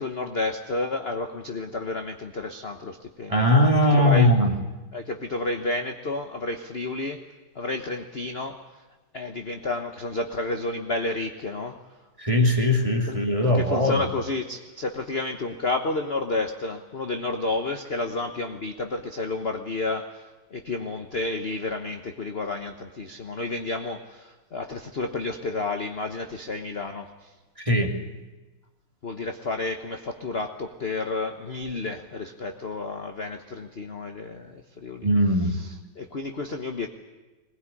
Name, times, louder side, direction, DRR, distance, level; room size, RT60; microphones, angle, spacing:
voice 1, 0.0-3.5 3.9-4.3 4.9-7.2 7.5-8.6 9.1-11.8 13.1-13.2 13.4-20.2 20.5-27.3 29.0-35.1 35.6-35.7 35.9-36.9, left 2 dB, 35° left, 6 dB, 1.1 m, -31 dB
voice 2, 3.3-4.5 12.2-14.0 27.6-27.9 35.0-35.5, left 1 dB, 15° right, 2 dB, 2.2 m, -20 dB
21.5 x 19.5 x 9.9 m, 1.2 s
omnidirectional pair, 2.4 m